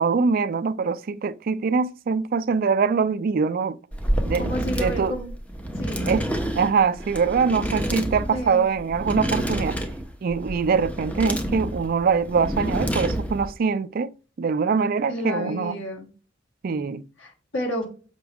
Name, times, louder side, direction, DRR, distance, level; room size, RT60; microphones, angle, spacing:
voice 1, 0.0-3.8 4.2-5.2 6.1-6.3 6.6-9.8 10.2-15.8 16.6-17.1, right 5 dB, 50° right, 0.4 m, -23 dB
sound 1, 3.9-13.5, equal, 5° left, 0.9 m, -28 dB
voice 2, 4.4-5.3 5.8-6.1 8.3-8.7 15.1-16.1 17.2-17.9, equal, 80° left, 2.6 m, -31 dB
7.0 x 5.8 x 3.5 m
head